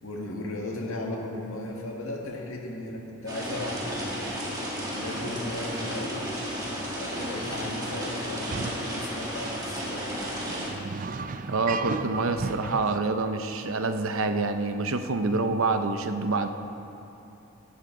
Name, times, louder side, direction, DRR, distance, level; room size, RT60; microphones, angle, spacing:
voice 1, 0.0-4.4 4.9-6.3 6.9-10.2, left 2 dB, 75° left, 0 dB, 1.9 m, -36 dB
sound 1, 3.3-10.7, equal, 15° right, 2.0 m, -33 dB
sound 2, 6.8-7.0 7.6-7.7 8.3-8.9 9.5-9.6 10.2-13.0, right 4 dB, 40° right, 0.4 m, -35 dB
voice 2, 11.5-16.5, right 3 dB, 70° right, 8 dB, 0.7 m, -27 dB
17.5 x 11.0 x 3.9 m, 2.9 s
head